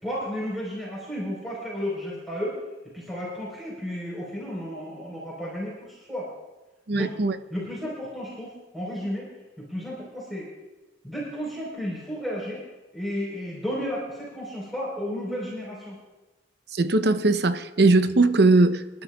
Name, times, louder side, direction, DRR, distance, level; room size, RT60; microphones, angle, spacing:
voice 1, 0.0-2.6 2.9-6.3 6.9-7.2 7.5-9.3 9.6-10.5 11.0-12.6 12.9-16.0, equal, ahead, 4.1 m, -33 dB
voice 2, 6.9-7.4 16.7-19.0, right 2 dB, 65° right, 0.7 m, -20 dB
29.0 x 11.5 x 2.4 m
head